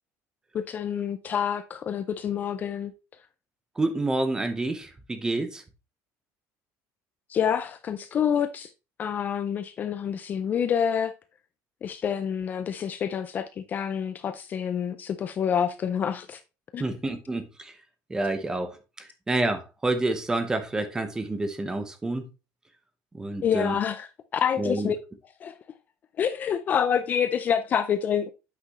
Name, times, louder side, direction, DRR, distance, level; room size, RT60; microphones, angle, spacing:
voice 1, 0.5-2.9 7.3-8.7 9.0-11.1 11.8-16.4 16.7-16.8 23.4-25.0 25.4-25.6 26.2-28.3, left 8 dB, 25° left, 0.4 m, -27 dB
voice 2, 3.8-5.6 16.8-17.7 18.1-22.3 23.1-23.7 24.6-24.9, right 2 dB, 10° right, 0.8 m, -28 dB
8.3 x 6.0 x 3.0 m
cardioid pair, 175°, 7 cm